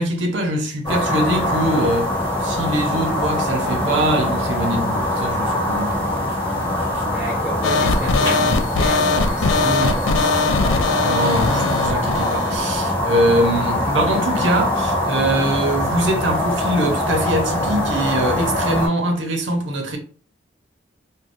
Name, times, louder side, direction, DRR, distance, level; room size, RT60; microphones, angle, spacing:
voice 1, 0.0-7.3 10.9-20.0, right 1 dB, 65° right, 0.7 m, -23 dB
sound 1, 0.8-18.9, left 1 dB, 25° left, 1.3 m, -23 dB
voice 2, 7.0-10.7, equal, 5° right, 0.4 m, -30 dB
sound 2, 7.6-12.6, left 3 dB, 85° left, 0.4 m, -20 dB
2.6 x 2.2 x 3.4 m
head